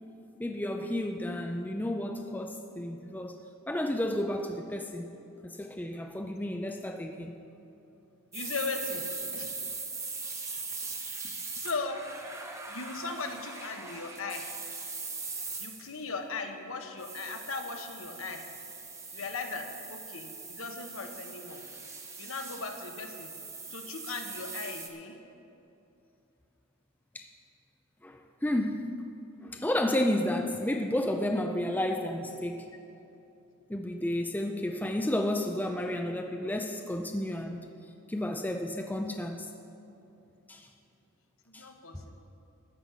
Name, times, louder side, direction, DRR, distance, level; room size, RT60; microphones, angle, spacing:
voice 1, 0.4-3.4 3.7-5.1 5.4-7.3 27.1-27.3 28.0-29.0 29.4-32.7 33.7-37.6 38.1-39.5 40.5-40.7 41.5-41.7, left 1 dB, 10° left, 4 dB, 0.4 m, -31 dB
voice 2, 8.3-9.6 10.5-10.7 11.5-12.1 12.7-14.5 15.6-18.5 19.1-21.6 22.2-23.3 23.7-25.2 41.5-42.2, left 3 dB, 70° left, 5 dB, 1.1 m, -38 dB
sound 1, 8.3-16.0 17.0-24.9, right 4 dB, 15° right, 0.8 m, -41 dB
13.5 x 5.9 x 8.3 m, 2.8 s
head